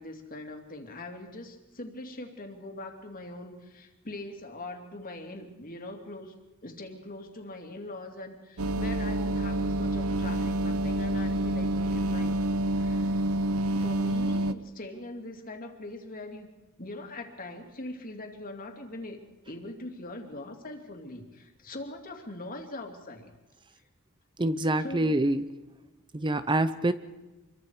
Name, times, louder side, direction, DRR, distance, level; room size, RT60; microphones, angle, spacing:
voice 1, 0.0-6.3 6.6-12.4 12.7-13.2 13.8-16.5 16.8-19.2 19.4-23.3 24.8-25.1, left 2 dB, 40° left, 4 dB, 3.0 m, -42 dB
sound 1, 8.6-14.5, right 1 dB, 85° right, 0.9 m, -28 dB
voice 2, 24.4-25.4 26.1-26.9, right 1 dB, 20° right, 12 dB, 0.7 m, -26 dB
28.0 x 23.0 x 5.0 m, 1.1 s
head